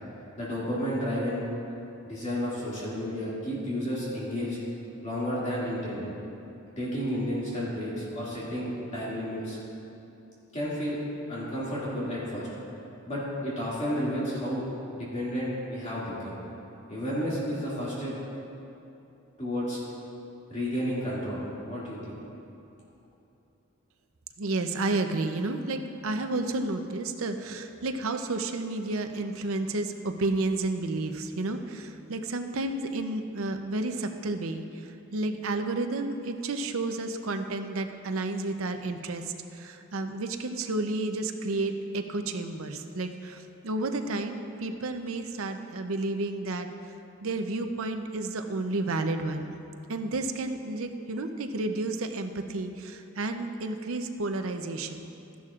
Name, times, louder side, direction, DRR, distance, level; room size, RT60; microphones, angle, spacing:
voice 1, 0.4-1.5 2.0-4.6 5.0-6.1 6.8-9.6 10.5-11.0 11.3-12.5 13.1-14.6 14.9-16.4 16.9-18.1 19.4-19.8 20.5-22.2, equal, 30° left, -8 dB, 2.3 m, -31 dB
voice 2, 24.4-46.7 47.2-49.5 49.9-55.1, right 2 dB, 75° right, 6 dB, 0.7 m, -31 dB
14.5 x 11.0 x 2.5 m, 2.9 s
head